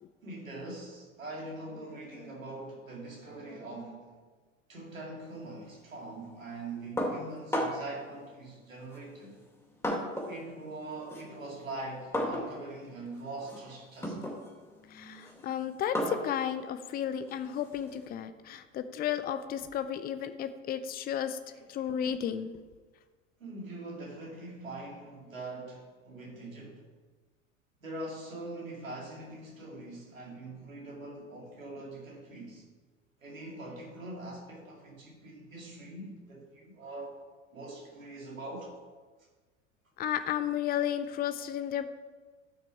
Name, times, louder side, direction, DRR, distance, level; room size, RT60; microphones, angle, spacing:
voice 1, 0.2-4.2 4.7-9.4 10.3-14.2 21.5-21.6 23.4-26.8 27.8-32.6 33.2-37.2 37.5-38.7, right 2 dB, 80° right, -2 dB, 2.6 m, -43 dB
sound 1, 7.0-8.0 8.9-10.4 10.7-18.1, equal, 5° left, 2.5 m, -36 dB
voice 2, 14.9-21.4 21.7-22.5 40.0-41.9, left 9 dB, 25° left, 11 dB, 0.6 m, -33 dB
13.5 x 5.9 x 4.7 m, 1.4 s
figure-of-eight pair, 75°, 39 cm